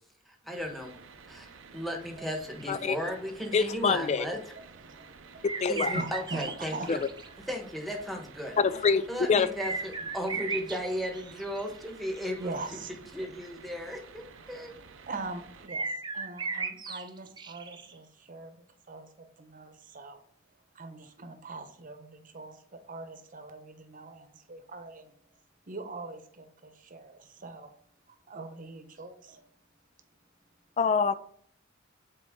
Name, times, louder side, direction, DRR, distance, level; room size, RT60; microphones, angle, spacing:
voice 1, 0.3-0.9 1.3-4.4 5.7-7.0 7.5-8.6 9.1-12.5 13.1-14.7, equal, ahead, 1.2 m, -35 dB
sound 1, 0.5-15.7, right 5 dB, 65° right, 0.6 m, -52 dB
sound 2, 2.2-3.0 5.4-7.3 7.5-7.6 7.9-8.0 9.6-11.9 12.1-12.2 15.7-17.9, right 4 dB, 20° right, 0.6 m, -36 dB
voice 2, 3.5-4.3 5.6-5.9 6.9-7.0 8.6-9.5 30.8-31.1, left 5 dB, 35° left, 0.3 m, -25 dB
voice 3, 4.8-5.1 5.9-6.9 12.4-13.0 14.5-14.6 15.0-20.2 20.7-25.1 25.7-27.7 28.1-29.4, right 3 dB, 40° right, 0.9 m, -42 dB
7.8 x 4.5 x 3.7 m
head